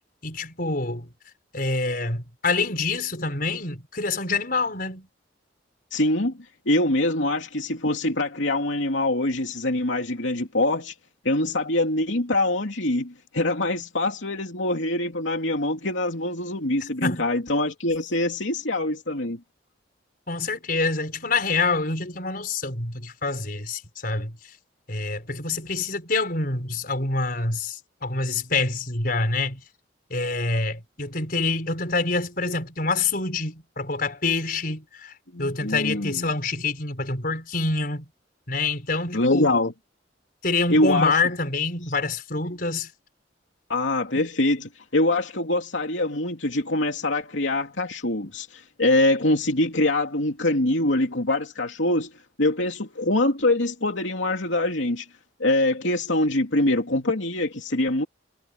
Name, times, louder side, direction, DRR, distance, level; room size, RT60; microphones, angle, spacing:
voice 1, 0.2-1.1 1.5-5.1 17.0-17.2 20.3-24.4 24.9-29.6 30.1-35.1 35.4-38.1 38.5-39.5 40.4-42.9, left 3 dB, 50° left, 5.5 m, -26 dB
voice 2, 5.9-6.4 6.7-10.9 11.2-19.4 35.3-36.3 39.1-39.7 40.7-41.2 43.7-52.1 52.4-55.1 55.4-58.1, left 2 dB, 80° left, 2.8 m, -24 dB
head